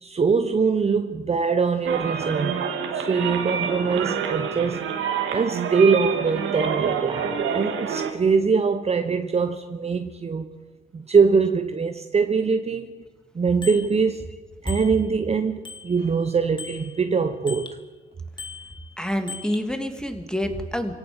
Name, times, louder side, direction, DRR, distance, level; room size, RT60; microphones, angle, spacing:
voice 1, 0.0-2.6 2.9-4.9 5.3-10.5 10.9-13.0 13.3-14.3 14.6-17.8, right 5 dB, 30° right, 1.2 m, -23 dB
sound 1, 1.8-8.1, right 7 dB, 80° right, 2.8 m, -27 dB
Bicycle bell, 13.6-13.9 14.7-15.3 15.6-17.8 18.4-19.7, left 4 dB, 25° left, 1.9 m, -40 dB
voice 2, 19.0-21.0, equal, 5° left, 2.9 m, -27 dB
27.0 x 17.5 x 7.2 m
cardioid pair, 90°, 20 cm